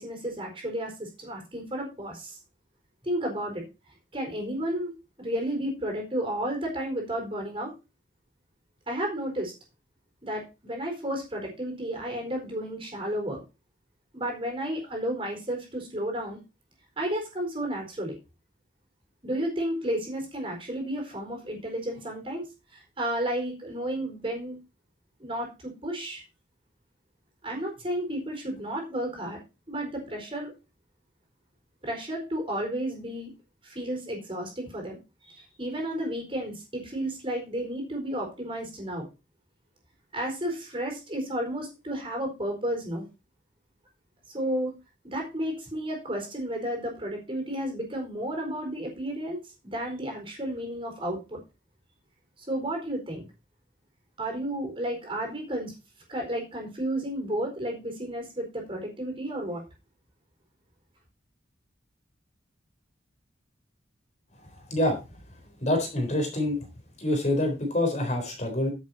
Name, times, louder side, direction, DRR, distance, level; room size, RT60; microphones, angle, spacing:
voice 1, 0.0-2.4 3.0-3.6 4.1-4.9 5.2-7.7 8.9-9.5 10.2-13.4 14.1-16.4 17.0-18.1 19.2-22.4 22.7-24.6 25.2-26.2 27.4-29.4 29.7-30.5 31.8-33.3 33.6-39.0 40.1-43.0 44.3-44.7 45.0-49.4 49.6-51.4 52.5-53.2 54.2-55.7 56.1-59.6, right 1 dB, 25° right, 2 dB, 4.3 m, -32 dB
voice 2, 65.6-66.7 67.0-68.7, left 1 dB, 35° left, 3 dB, 3.9 m, -26 dB
10.5 x 7.4 x 4.2 m, 0.27 s
head